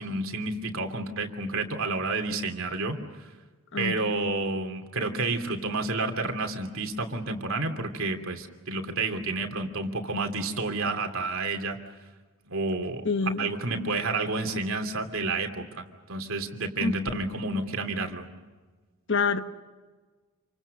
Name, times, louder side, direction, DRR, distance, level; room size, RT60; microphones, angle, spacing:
voice 1, 0.0-3.0 3.8-11.8 12.5-13.0 13.4-18.3, right 3 dB, 65° right, 5 dB, 2.9 m, -30 dB
voice 2, 3.7-4.1 13.0-13.5 16.8-17.2 19.1-19.4, left 4 dB, 55° left, 9 dB, 1.2 m, -27 dB
28.5 x 24.5 x 6.6 m, 1.3 s
head